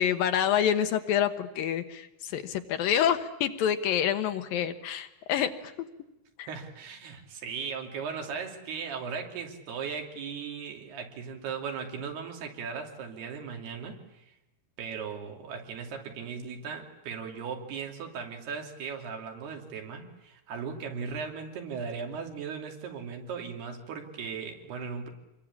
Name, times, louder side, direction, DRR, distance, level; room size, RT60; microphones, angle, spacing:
voice 1, 0.0-5.9 6.4-6.5, left 9 dB, 70° left, 9 dB, 2.8 m, -27 dB
voice 2, 6.5-14.2 14.8-25.1, right 6 dB, 85° right, 3 dB, 4.9 m, -37 dB
27.5 x 22.5 x 8.5 m, 0.91 s
omnidirectional pair, 4.5 m